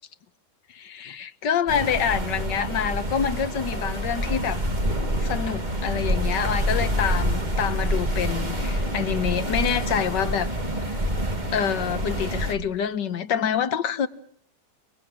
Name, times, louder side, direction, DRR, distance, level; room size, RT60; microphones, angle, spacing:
voice 1, 0.7-4.6 5.2-10.5 10.8-11.1 11.5-14.1, left 8 dB, 80° left, 1.8 m, -27 dB
sound 1, 1.7-12.5, equal, 25° right, 2.7 m, -27 dB
30.0 x 21.5 x 6.3 m
omnidirectional pair, 1.9 m